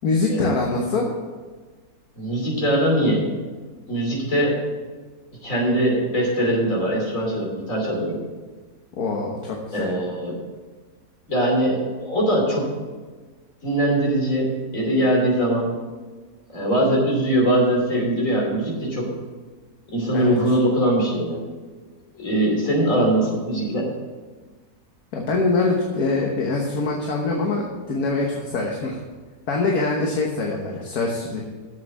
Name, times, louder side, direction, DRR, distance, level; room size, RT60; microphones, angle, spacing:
voice 1, 0.0-1.1 9.0-9.9 20.1-20.4 25.1-29.0 29.5-31.4, left 3 dB, 75° left, -1 dB, 1.7 m, -24 dB
voice 2, 2.2-3.2 3.9-4.6 5.4-8.2 9.7-10.3 11.3-12.7 13.6-15.7 16.5-19.1 19.9-21.4 22.2-23.9, right 1 dB, 60° left, -2 dB, 3.4 m, -21 dB
7.6 x 7.3 x 7.6 m, 1.4 s
omnidirectional pair, 1.6 m